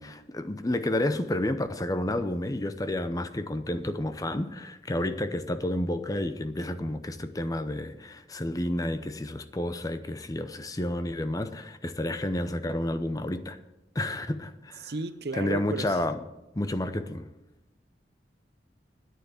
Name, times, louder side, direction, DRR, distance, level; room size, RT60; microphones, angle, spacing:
voice 1, 0.0-13.6 13.9-14.9 15.3-16.2 16.5-17.3, left 1 dB, 20° left, 0.6 m, -30 dB
voice 2, 14.8-15.9, right 2 dB, 60° right, 0.8 m, -33 dB
10.0 x 9.5 x 8.0 m
head